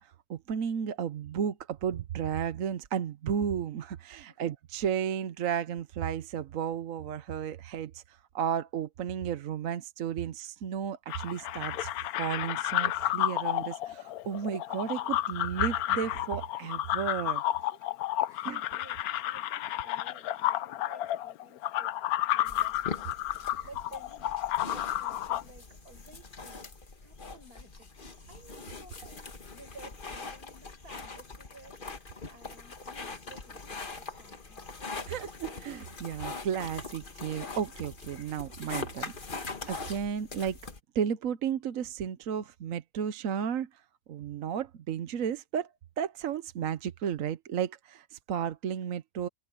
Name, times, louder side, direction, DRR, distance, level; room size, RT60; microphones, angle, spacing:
voice 1, 0.0-11.9 12.2-17.4 18.4-18.6 23.6-23.7 35.1-40.6 40.9-43.8 44.1-49.3, right 8 dB, 65° right, 1.2 m, -33 dB
sound 1, 11.1-25.4, left 13 dB, 75° left, 1.1 m, -31 dB
voice 2, 17.6-18.0 18.3-21.9 22.3-26.6 27.0-27.9 28.3-34.7, right 2 dB, 80° right, 5.7 m, -55 dB
sound 2, 22.5-40.8, left 4 dB, 35° left, 1.6 m, -42 dB
omnidirectional pair, 1.6 m